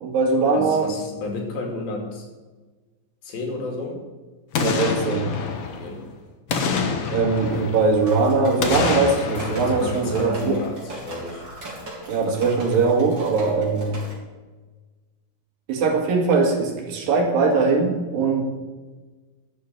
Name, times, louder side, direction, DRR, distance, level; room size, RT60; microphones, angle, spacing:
voice 1, 0.0-0.9 4.6-5.3 7.1-10.6 12.1-14.0 15.7-18.4, right 4 dB, 75° right, 2 dB, 3.6 m, -21 dB
voice 2, 0.5-2.3 3.2-4.0 5.8-6.1 9.8-11.5, left 3 dB, 80° left, 1 dB, 4.4 m, -32 dB
Boom, 4.5-6.1 6.5-8.1 8.6-10.8 11.2-11.3, left 5 dB, 60° left, 1.6 m, -27 dB
sound 1, 8.1-14.1, right 1 dB, 30° right, 4.1 m, -38 dB
13.0 x 7.2 x 8.8 m, 1.3 s
omnidirectional pair, 4.2 m